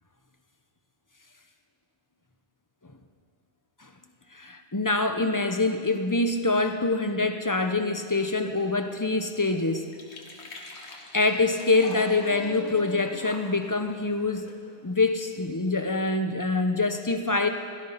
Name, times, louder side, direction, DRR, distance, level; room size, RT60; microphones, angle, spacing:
voice 1, 4.3-9.9 11.1-14.5 14.8-17.5, left 3 dB, 20° left, 6 dB, 0.7 m, -25 dB
sound 1, 8.3-15.5, left 2 dB, 75° left, 1.9 m, -48 dB
16.5 x 13.5 x 5.7 m, 2.1 s
omnidirectional pair, 1.1 m